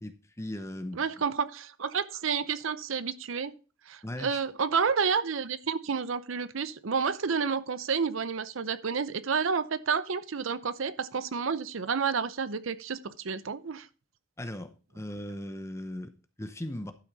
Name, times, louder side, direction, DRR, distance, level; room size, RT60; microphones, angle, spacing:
voice 1, 0.0-1.0 4.0-4.4 14.4-16.9, left 1 dB, 15° left, 0.7 m, -38 dB
voice 2, 0.9-3.5 3.9-13.9, right 6 dB, 70° right, 0.6 m, -30 dB
11.5 x 6.2 x 4.0 m
head